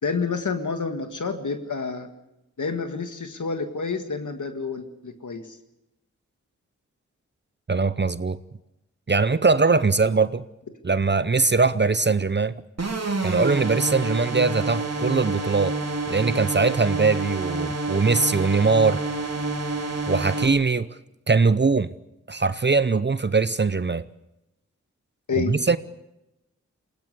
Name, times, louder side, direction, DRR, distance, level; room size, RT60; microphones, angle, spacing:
voice 1, 0.0-2.1 2.6-5.6 25.3-25.6, left 4 dB, 80° left, 1.8 m, -29 dB
voice 2, 7.7-8.4 9.1-10.4 10.8-12.5 13.2-15.8 16.1-19.0 20.1-20.9 21.3-21.9 22.3-24.1 25.4-25.8, right 4 dB, 35° right, 0.7 m, -21 dB
sound 1, 12.8-20.5, right 3 dB, 60° right, 3.0 m, -28 dB
20.5 x 17.5 x 8.2 m
cardioid pair, 45°, 30 cm